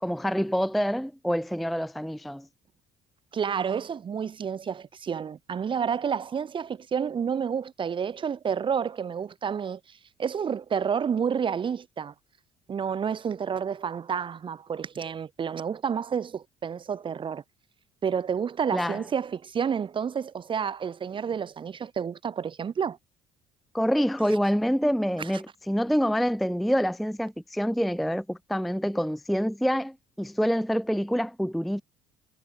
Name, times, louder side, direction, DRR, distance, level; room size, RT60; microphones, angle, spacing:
voice 1, 0.0-2.5 18.7-19.0 23.7-31.8, equal, ahead, 0.4 m, -26 dB
voice 2, 3.3-12.1 12.7-17.4 18.0-23.0 25.3-25.4, right 7 dB, 30° right, 0.9 m, -30 dB
figure-of-eight pair, 50°, 16 cm